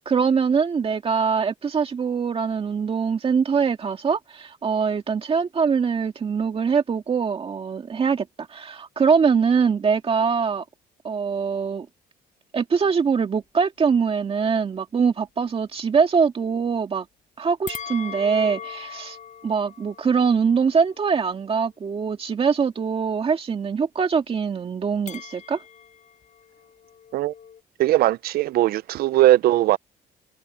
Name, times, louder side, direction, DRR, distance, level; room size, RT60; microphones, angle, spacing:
voice 1, 0.0-10.7 11.0-11.9 12.5-17.1 17.4-19.2 19.4-25.6, right 6 dB, 35° right, 2.2 m, -23 dB
sound 1, 17.7-22.1 25.1-27.6, left 8 dB, 45° left, 6.5 m, -41 dB
voice 2, 27.8-29.8, right 14 dB, 65° right, 0.5 m, -19 dB
cardioid pair, 110°, 17 cm